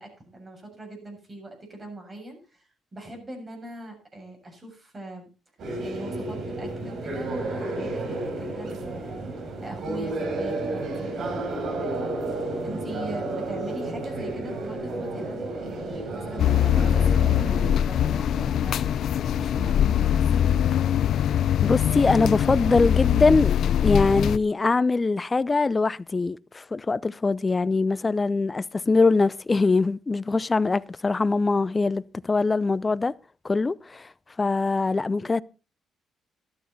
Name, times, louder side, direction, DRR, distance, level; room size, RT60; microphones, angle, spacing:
voice 1, 0.0-5.3 5.8-9.2 9.6-20.2, right 1 dB, 30° right, 7.2 m, -41 dB
sound 1, 5.6-17.8, right 2 dB, 60° right, 4.2 m, -32 dB
sound 2, 16.4-24.4, left 10 dB, 70° left, 0.6 m, -22 dB
voice 2, 21.6-33.1 33.4-34.1 34.4-35.4, left 3 dB, 25° left, 0.5 m, -23 dB
13.0 x 12.5 x 4.0 m
cardioid pair, 90°, 0 cm